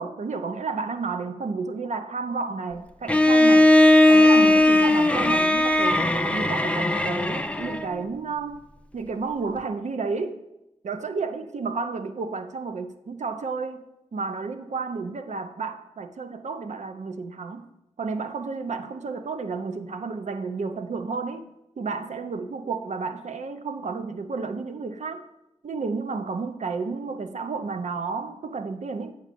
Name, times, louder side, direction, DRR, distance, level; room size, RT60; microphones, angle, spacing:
voice 1, 0.0-3.7 4.1-8.6 8.9-10.4 10.8-13.8 14.1-17.7 18.0-21.4 21.8-25.2 25.6-29.1, right 4 dB, 90° right, 0.6 m, -31 dB
Bowed string instrument, 3.1-7.9, left 1 dB, 10° left, 0.5 m, -18 dB
8.3 x 3.8 x 6.8 m
cardioid pair, 50°, 12 cm